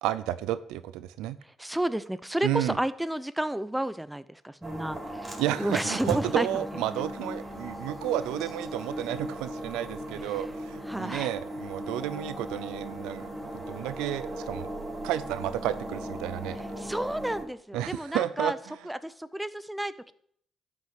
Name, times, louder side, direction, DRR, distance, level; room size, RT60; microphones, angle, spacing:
voice 1, 0.0-1.4 2.4-2.8 5.4-13.3 13.5-14.7 15.0-16.6 17.7-18.5, right 13 dB, 85° right, 14 dB, 0.5 m, -31 dB
voice 2, 1.6-5.3 5.6-6.6 10.3-10.4 10.9-11.3 16.8-18.6 18.8-20.1, right 1 dB, 5° right, 14 dB, 0.7 m, -31 dB
sound 1, 4.6-17.4, right 1 dB, 30° right, 4.1 m, -37 dB
11.5 x 5.9 x 6.0 m, 0.64 s
supercardioid pair, 60°, 0 cm